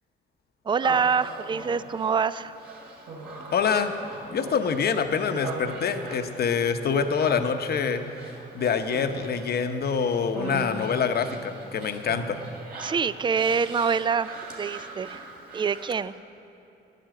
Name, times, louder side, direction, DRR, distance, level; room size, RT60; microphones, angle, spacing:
voice 1, 0.7-2.6 12.8-15.2 15.5-16.1, right 6 dB, 25° right, 16 dB, 0.4 m, -25 dB
Human voice, 0.8-16.0, right 3 dB, 55° right, 2.8 m, -41 dB
voice 2, 3.5-3.9 4.3-8.0 8.5-12.4, left 6 dB, 50° left, 8 dB, 0.9 m, -25 dB
13.0 x 10.0 x 7.7 m, 2.9 s
cardioid pair, 90°, 20 cm